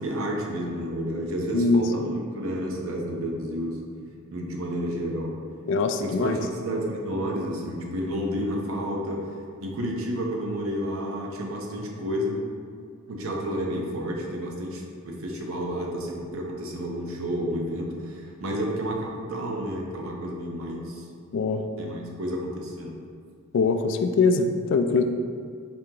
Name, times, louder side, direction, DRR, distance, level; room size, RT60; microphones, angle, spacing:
voice 1, 0.0-3.8 4.3-5.3 6.0-12.4 13.1-21.0 21.8-22.9, equal, 80° right, 0 dB, 0.7 m, -30 dB
voice 2, 1.5-1.9 5.7-6.4 21.3-21.6 23.5-25.0, left 4 dB, 60° left, 7 dB, 0.3 m, -22 dB
4.2 x 2.8 x 3.7 m, 2.1 s
head